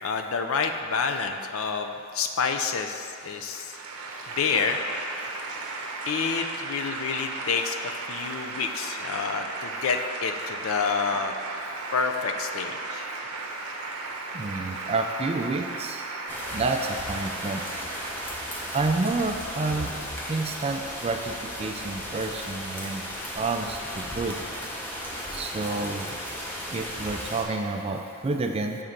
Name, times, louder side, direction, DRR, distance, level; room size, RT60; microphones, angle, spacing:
voice 1, 0.0-3.7 4.4-4.8 6.1-11.3 11.9-13.1, left 5 dB, 70° left, 5 dB, 0.4 m, -28 dB
sound 1, 3.2-19.2, right 3 dB, 85° right, 0.7 m, -36 dB
voice 2, 14.3-16.0 16.5-17.6 18.7-19.9 20.3-23.0 23.4-24.4 25.3-26.1 26.7-28.8, right 3 dB, 25° right, 4 dB, 0.3 m, -29 dB
sound 2, 16.3-27.4, equal, 10° left, 0.7 m, -35 dB
6.6 x 3.7 x 5.8 m, 2.6 s
head